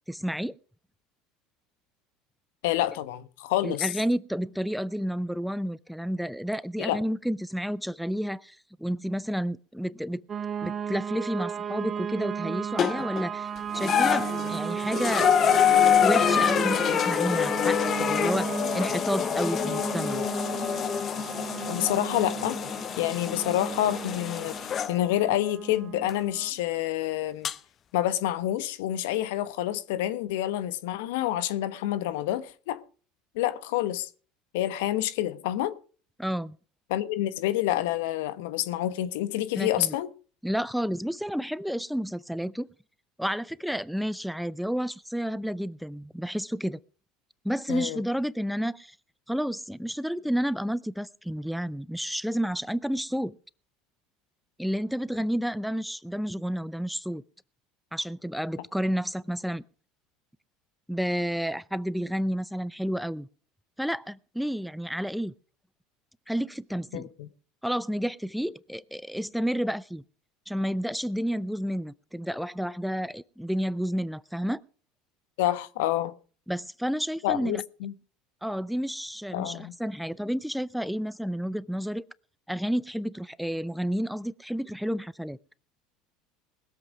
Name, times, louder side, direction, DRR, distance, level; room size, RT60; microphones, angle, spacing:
voice 1, 0.1-0.5 3.6-10.2 10.6-15.3 16.0-20.2 36.2-36.6 39.6-40.0 40.4-42.7 43.2-46.8 47.4-48.9 49.3-53.4 54.6-57.2 57.9-59.6 60.9-63.3 63.8-65.3 66.3-67.1 67.6-70.0 70.5-74.6 76.5-77.6 78.4-82.0 82.5-85.4, equal, ahead, 0.5 m, -30 dB
voice 2, 2.6-3.9 6.8-7.0 21.7-22.6 23.0-27.5 27.9-32.8 33.3-34.1 34.5-35.7 36.9-40.1 47.7-48.0 66.9-67.3 75.4-76.1 77.2-77.9 79.3-79.7, left 13 dB, 75° left, 1.1 m, -28 dB
sound 1, 10.3-26.5, right 8 dB, 35° right, 1.0 m, -34 dB
sound 2, 12.8-13.2 13.7-24.9 26.1-26.2 27.4-27.5, left 9 dB, 40° left, 0.8 m, -26 dB
20.5 x 7.9 x 4.8 m
hypercardioid pair, 80°, 0 cm